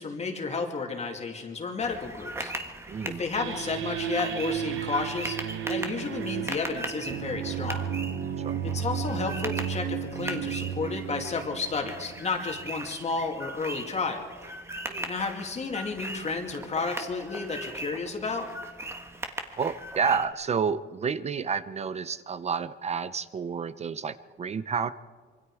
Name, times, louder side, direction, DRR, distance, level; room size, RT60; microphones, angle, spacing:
voice 1, 0.0-2.5 3.1-7.8 8.6-14.3 15.1-18.5, left 4 dB, 35° left, 3 dB, 2.4 m, -32 dB
sound 1, 1.8-20.3, right 1 dB, 15° right, 1.5 m, -39 dB
voice 2, 2.9-3.2 8.4-8.6 14.9-15.1 19.6-24.9, right 6 dB, 30° right, 15 dB, 0.6 m, -30 dB
sound 2, 3.3-12.7, right 9 dB, 80° right, 1.1 m, -33 dB
26.0 x 24.0 x 4.9 m, 1.6 s
cardioid pair, 140°, 20 cm